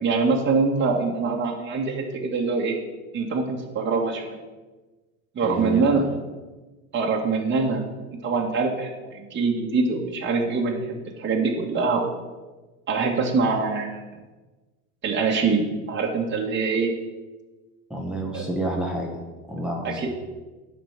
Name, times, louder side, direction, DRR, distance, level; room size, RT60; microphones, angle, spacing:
voice 1, 0.0-2.8 3.1-4.4 5.4-6.0 6.9-7.8 8.2-8.9 9.2-12.1 12.9-14.0 15.0-16.9 18.3-18.5 19.8-20.1, right 4 dB, 30° right, -1 dB, 1.9 m, -24 dB
voice 2, 5.4-6.0 17.9-19.2 19.5-20.1, right 1 dB, ahead, -1 dB, 1.5 m, -29 dB
10.5 x 5.2 x 7.5 m, 1.2 s
supercardioid pair, 105°, 37 cm